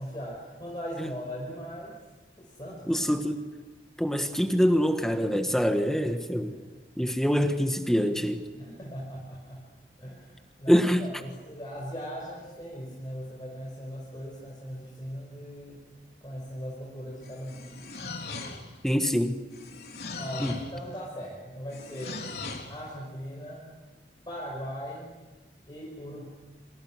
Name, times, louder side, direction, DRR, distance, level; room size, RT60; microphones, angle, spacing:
voice 1, 0.0-1.9 2.4-3.3 6.4-6.9 8.6-9.6 10.0-15.8 16.2-17.9 20.2-22.4 22.7-23.7 24.2-25.1 25.7-26.2, equal, 25° left, 5.3 m, -39 dB
voice 2, 2.9-3.4 4.0-6.5 7.0-8.4 10.7-11.1 18.8-19.4 20.4-20.6, equal, 5° left, 1.5 m, -25 dB
sound 1, 17.2-18.8 19.5-20.7 21.7-22.8, left 3 dB, 65° left, 3.9 m, -39 dB
28.5 x 27.0 x 6.4 m
head